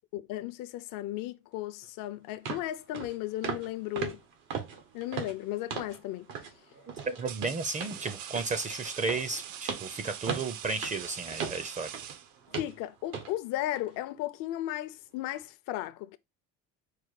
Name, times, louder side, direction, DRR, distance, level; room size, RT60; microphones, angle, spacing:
voice 1, 0.1-4.2 4.9-6.3 12.6-16.2, left 14 dB, 60° left, 0.5 m, -35 dB
sound 1, 1.8-1.9 2.5-2.7 2.9-3.1 3.4-3.7 4.0-6.0 6.3-6.5 6.9-12.2 12.5-12.8 13.1-13.3 13.8-13.9, right 6 dB, 90° right, 1.3 m, -38 dB
sound 2, 5.6-5.9 6.7-12.7, right 9 dB, 70° right, 0.7 m, -43 dB
voice 2, 7.0-11.9, right 4 dB, 20° right, 0.5 m, -33 dB
4.6 x 2.2 x 4.7 m
cardioid pair, 115°, 36 cm